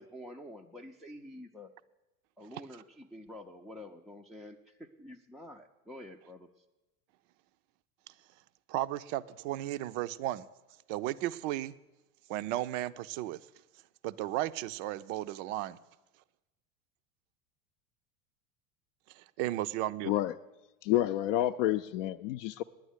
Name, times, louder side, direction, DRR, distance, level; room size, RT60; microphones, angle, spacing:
voice 1, 0.0-1.7 2.4-6.5, left 1 dB, ahead, 0 dB, 0.3 m, -48 dB
voice 2, 8.7-10.5 10.9-11.7 12.3-13.4 14.0-15.8 19.2-20.1, right 14 dB, 60° right, 14 dB, 0.6 m, -34 dB
voice 3, 20.8-22.6, left 13 dB, 60° left, 8 dB, 0.5 m, -29 dB
10.0 x 9.3 x 8.1 m, 1.0 s
hypercardioid pair, 85°, 44 cm